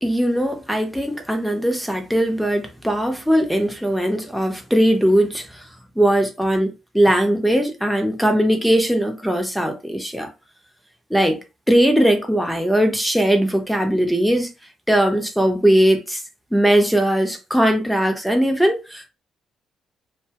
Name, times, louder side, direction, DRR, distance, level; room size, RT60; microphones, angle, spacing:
voice 1, 0.0-5.7 6.0-10.3 11.1-11.4 11.7-14.5 14.9-16.2 16.5-19.1, right 1 dB, ahead, 0.8 m, -19 dB
2.6 x 2.2 x 2.9 m
cardioid pair, 90°, 0 cm